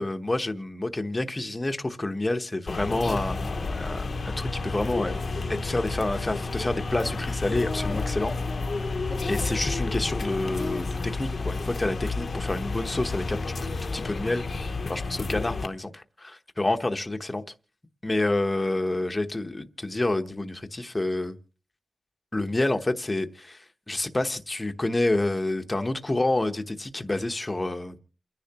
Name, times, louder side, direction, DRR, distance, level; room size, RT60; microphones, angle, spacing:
voice 1, 0.0-4.1 4.4-5.2 5.6-8.3 8.8-9.0 9.3-13.4 13.8-14.4 14.9-17.4 18.0-21.3 22.3-28.0, left 2 dB, 20° left, 1.0 m, -28 dB
sound 1, 2.7-15.7, left 3 dB, 50° left, 1.0 m, -30 dB
29.0 x 10.5 x 2.9 m
wide cardioid pair, 155°, 0 cm